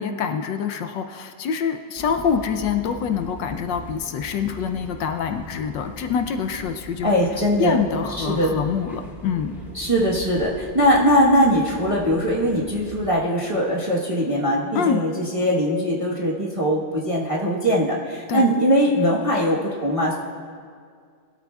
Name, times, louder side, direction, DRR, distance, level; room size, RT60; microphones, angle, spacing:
voice 1, 0.0-7.1 7.6-9.5 14.7-15.0 18.3-18.4, left 6 dB, 75° left, 6 dB, 1.2 m, -25 dB
sound 1, 2.0-13.1, right 1 dB, ahead, 2.3 m, -41 dB
voice 2, 7.0-7.8 8.2-8.6 9.7-20.1, equal, 20° right, -4 dB, 1.0 m, -21 dB
20.5 x 12.5 x 2.3 m, 2.1 s
omnidirectional pair, 2.1 m